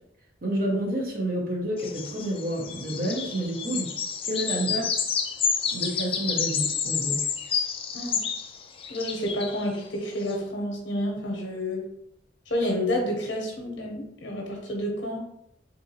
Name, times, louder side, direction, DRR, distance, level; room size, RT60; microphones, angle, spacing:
voice 1, 0.4-3.9 4.2-4.9 5.7-7.2, right 1 dB, 55° right, 0 dB, 0.7 m, -29 dB
sound 1, 1.8-9.6 10.3-10.4, left 6 dB, 30° left, 0.3 m, -29 dB
voice 2, 8.9-11.8 12.5-15.2, left 1 dB, 80° left, 0 dB, 0.7 m, -29 dB
3.7 x 2.7 x 2.7 m, 0.76 s
head